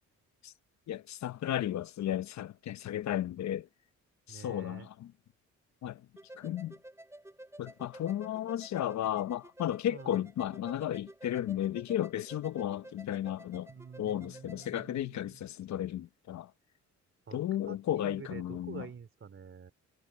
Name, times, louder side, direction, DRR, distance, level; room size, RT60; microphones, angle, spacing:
voice 1, 0.9-3.7 4.3-5.1 5.8-6.0 6.4-6.7 7.6-13.7 14.0-16.5 17.3-18.9, left 11 dB, 65° left, 1.0 m, -34 dB
voice 2, 4.3-4.9 9.9-10.3 13.7-15.4 17.3-17.4 17.7-19.7, right 6 dB, 45° right, 3.2 m, -48 dB
sound 1, 6.2-14.9, right 1 dB, 10° right, 7.3 m, -52 dB
cardioid pair, 90°, 30 cm